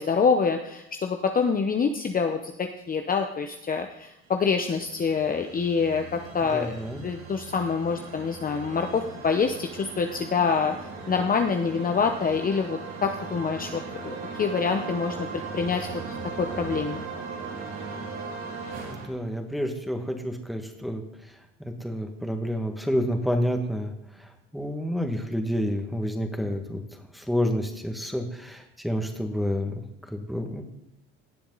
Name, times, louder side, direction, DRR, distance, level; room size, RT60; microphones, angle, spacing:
voice 1, 0.0-15.3 15.5-17.0, left 5 dB, 25° left, 5 dB, 0.9 m, -26 dB
sound 1, 4.4-19.1, right 4 dB, 60° right, 3.5 m, -38 dB
voice 2, 6.5-7.0 18.8-21.0 21.6-23.9 24.5-26.8 27.1-30.6, equal, ahead, 3 dB, 1.9 m, -29 dB
17.5 x 7.0 x 4.1 m, 0.87 s
supercardioid pair, 90°, 31 cm